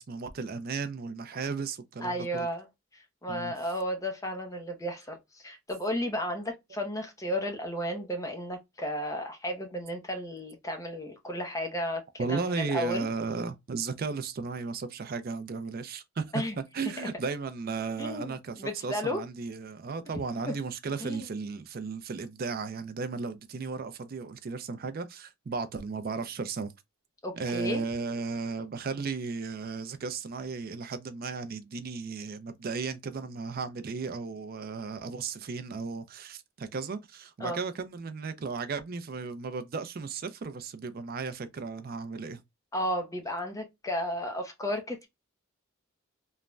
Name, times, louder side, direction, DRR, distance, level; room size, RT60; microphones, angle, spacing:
voice 1, 0.0-2.5 3.3-3.5 7.9-8.1 12.2-16.4 16.7-26.7 27.3-42.4, right 4 dB, 45° right, 0.4 m, -35 dB
voice 2, 2.0-2.7 2.9-13.1 16.3-16.6 18.0-19.2 20.5-20.6 21.0-21.3 27.2-27.8 37.4-37.6 42.7-45.1, equal, 15° left, 0.6 m, -33 dB
3.1 x 2.1 x 2.3 m
head